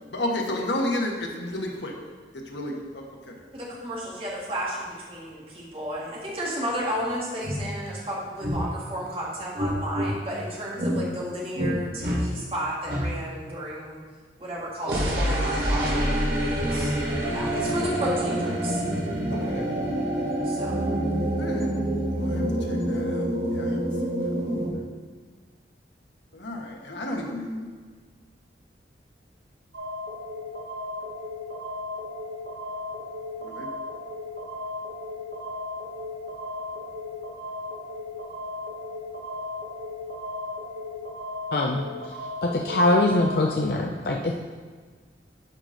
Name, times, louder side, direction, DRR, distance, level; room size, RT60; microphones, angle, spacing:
voice 1, 0.0-1.9 2.3-3.3 19.3-19.7 21.4-21.7 22.1-24.6 26.3-27.7 33.4-33.7, left 1 dB, 90° left, 1 dB, 1.3 m, -32 dB
voice 2, 3.5-14.0 14.4-16.2 16.6-16.9 17.3-18.8 20.4-20.8, equal, 30° right, -4 dB, 1.7 m, -32 dB
sound 1, 7.0-7.1 7.4-7.6 8.4-8.6 9.6-10.1 10.8-11.0 11.5-11.7 12.0-12.2 12.9-13.0 14.8-24.7, right 1 dB, 60° right, 1.8 m, -26 dB
sound 2, 29.7-43.7, left 2 dB, 90° right, 1.2 m, -36 dB
voice 3, 41.5-41.8 42.4-44.3, left 2 dB, 60° left, 0 dB, 0.5 m, -22 dB
11.0 x 5.0 x 3.9 m, 1.5 s
head